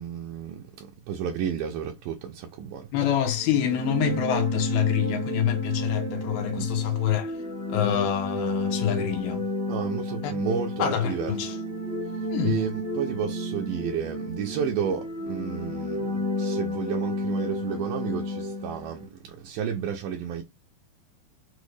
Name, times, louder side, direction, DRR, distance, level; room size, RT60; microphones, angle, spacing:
voice 1, 0.0-2.9 6.6-6.7 9.7-11.5 12.4-20.4, right 7 dB, 85° right, 1.9 m, -32 dB
voice 2, 2.9-7.3 7.7-9.5 10.2-10.3 10.8-11.5 12.3-12.6, left 10 dB, 80° left, 2.7 m, -26 dB
sound 1, 3.4-19.1, equal, 35° left, 0.5 m, -31 dB
6.1 x 2.1 x 3.2 m
omnidirectional pair, 4.5 m